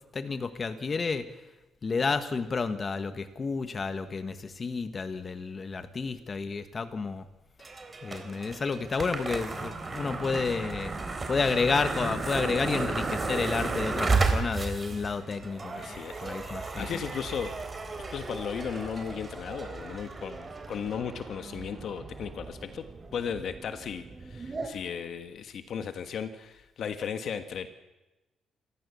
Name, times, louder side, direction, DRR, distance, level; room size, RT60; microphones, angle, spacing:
voice 1, 0.1-1.2 1.8-7.3 8.0-10.9 11.3-16.8, left 4 dB, 35° left, 10 dB, 1.7 m, -31 dB
sound 1, 7.6-24.7, right 3 dB, 30° right, 3.8 m, -34 dB
voice 2, 15.7-16.3 16.7-17.6 18.1-22.8 23.1-27.7, left 7 dB, 65° left, 9 dB, 1.5 m, -36 dB
28.0 x 14.5 x 7.1 m, 1.0 s
cardioid pair, 90°, 0 cm